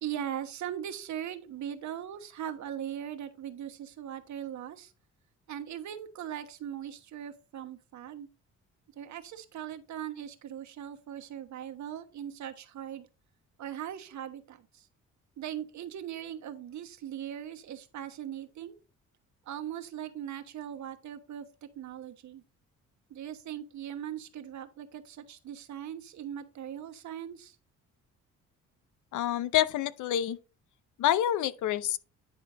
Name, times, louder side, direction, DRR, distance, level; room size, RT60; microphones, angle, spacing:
voice 1, 0.0-4.9 5.5-8.3 9.0-13.1 13.6-14.9 15.4-18.8 19.4-22.4 23.1-27.6, right 10 dB, 70° right, 1.2 m, -40 dB
voice 2, 29.1-30.4 31.0-32.0, left 12 dB, 80° left, 0.7 m, -27 dB
9.7 x 4.6 x 4.1 m
cardioid pair, 90°, 30 cm